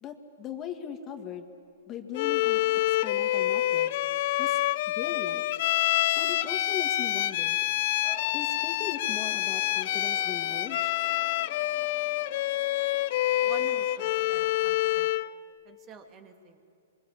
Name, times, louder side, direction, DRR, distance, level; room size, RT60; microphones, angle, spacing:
voice 1, 0.0-1.5 1.9-2.6 2.9-3.9 4.4-4.6 4.9-5.4 6.1-7.6 8.3-10.9, left 8 dB, 25° left, 6 dB, 2.1 m, -39 dB
Bowed string instrument, 2.1-15.3, left 15 dB, 50° left, 0.6 m, -27 dB
sound 1, 8.0-14.5, right 2 dB, 5° right, 4.0 m, -53 dB
voice 2, 13.4-15.1 15.6-16.6, right 6 dB, 30° right, 6 dB, 2.3 m, -47 dB
27.5 x 23.0 x 8.7 m, 2.5 s
hypercardioid pair, 135°, 0 cm